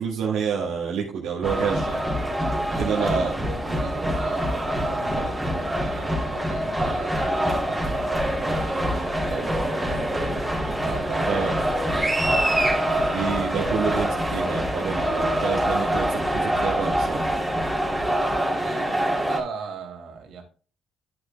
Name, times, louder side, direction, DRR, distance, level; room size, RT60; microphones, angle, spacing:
voice 1, 0.0-2.0 2.8-3.3 11.3-11.5 13.1-17.3, right 6 dB, 90° right, -3 dB, 1.9 m, -28 dB
sound 1, 1.4-19.4, equal, 5° right, 3.0 m, -25 dB
voice 2, 2.7-11.5 11.9-12.4 18.0-20.4, right 5 dB, 75° right, 4 dB, 2.4 m, -36 dB
10.5 x 8.6 x 2.2 m, 0.39 s
cardioid pair, 90°, 0 cm